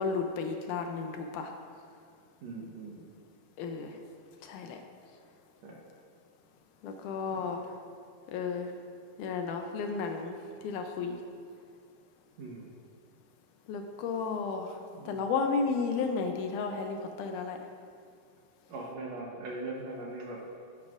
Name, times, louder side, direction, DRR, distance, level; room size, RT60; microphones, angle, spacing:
voice 1, 0.0-1.5 3.6-3.9 4.4-4.8 6.8-7.6 8.3-8.7 9.2-10.4 10.6-11.2 13.7-14.8 15.1-17.6, left 5 dB, 80° left, 4 dB, 1.9 m, -33 dB
voice 2, 2.4-3.0 5.6-5.8 7.3-7.5 12.4-12.7 14.9-15.2 18.7-20.4, right 2 dB, 65° right, -1 dB, 1.9 m, -40 dB
12.5 x 9.4 x 2.5 m, 2.2 s
omnidirectional pair, 3.9 m